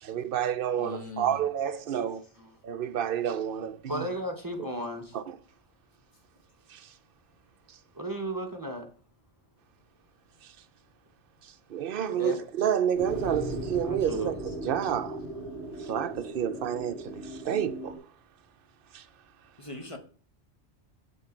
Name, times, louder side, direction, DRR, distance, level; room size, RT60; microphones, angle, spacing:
voice 1, 0.0-2.2 2.6-4.1 5.1-5.3 6.7-6.8 11.7-14.3 14.6-15.2 15.8-18.0 18.9-19.0, right 9 dB, 60° right, 0.7 m, -29 dB
voice 2, 0.8-1.4 19.6-20.0, left 3 dB, 30° left, 1.2 m, -40 dB
voice 3, 3.9-5.1 7.9-8.9 12.1-12.4 13.8-14.3, right 1 dB, 20° right, 1.1 m, -34 dB
sound 1, 12.9-18.0, right 1 dB, 65° left, 3.0 m, -37 dB
7.7 x 6.3 x 4.4 m
omnidirectional pair, 1.2 m